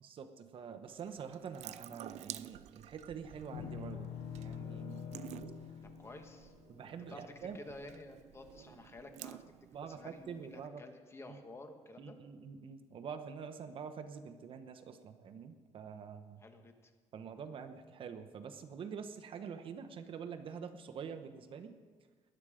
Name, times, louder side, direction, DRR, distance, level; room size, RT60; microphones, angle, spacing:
voice 1, 0.0-5.2 6.7-7.6 9.7-10.8 11.3-11.4 12.0-16.4 17.1-21.8, right 6 dB, 50° right, 7 dB, 1.0 m, -46 dB
Water tap faucet / Sink (filling or washing) / Drip, 0.9-10.7, right 13 dB, 75° right, 0.4 m, -52 dB
sound 1, 3.5-8.0, left 8 dB, 90° left, 0.8 m, -46 dB
voice 2, 5.8-6.5 7.1-9.4 9.8-12.2 16.4-16.9, left 2 dB, 20° left, 6 dB, 1.4 m, -52 dB
20.0 x 11.0 x 5.0 m, 1.5 s
cardioid pair, 145°, 12 cm